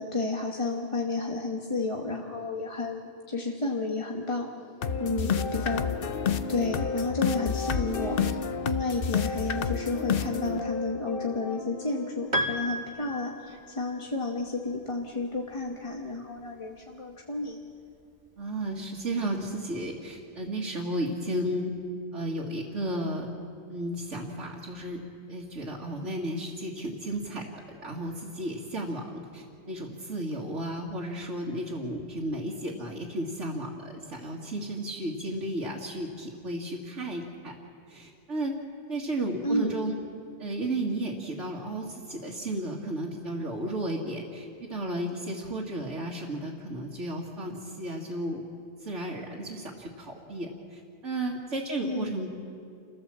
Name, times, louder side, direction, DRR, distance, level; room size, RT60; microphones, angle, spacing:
voice 1, 0.0-4.5 5.0-5.9 6.5-17.6 39.4-39.8 51.8-52.1, left 3 dB, 25° left, 0 dB, 1.3 m, -31 dB
sound 1, 4.8-12.8, left 6 dB, 55° left, 0.9 m, -30 dB
voice 2, 5.1-5.5 18.4-21.7 22.1-23.3 23.7-25.0 25.3-27.4 27.8-37.6 37.9-38.5 38.9-40.0 40.4-48.4 48.8-52.3, right 1 dB, 70° right, -4 dB, 2.3 m, -33 dB
Piano, 12.3-14.0, equal, 40° right, 1.5 m, -32 dB
28.5 x 15.0 x 7.5 m, 2.4 s
omnidirectional pair, 1.3 m